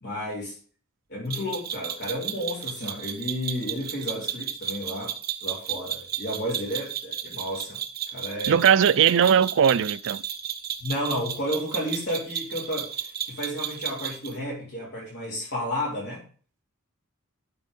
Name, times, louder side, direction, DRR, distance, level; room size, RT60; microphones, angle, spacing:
voice 1, 0.0-0.5 1.1-5.1 5.4-7.8 8.1-8.6 10.8-16.2, equal, 55° left, 3.5 m, -32 dB
sound 1, 1.3-14.4, right 9 dB, 45° right, 1.2 m, -33 dB
voice 2, 8.5-10.2, right 8 dB, 60° right, 0.4 m, -19 dB
12.0 x 5.4 x 5.3 m
head